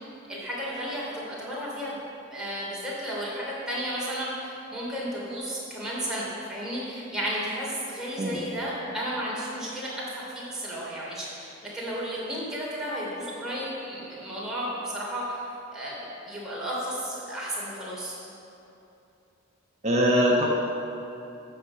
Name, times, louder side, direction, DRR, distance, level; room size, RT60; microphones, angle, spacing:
voice 1, 0.3-2.0 2.3-15.4 15.7-18.2, equal, 5° right, -7 dB, 3.0 m, -33 dB
voice 2, 19.8-20.5, equal, 30° right, -2 dB, 1.0 m, -22 dB
10.5 x 6.9 x 7.5 m, 2.9 s
head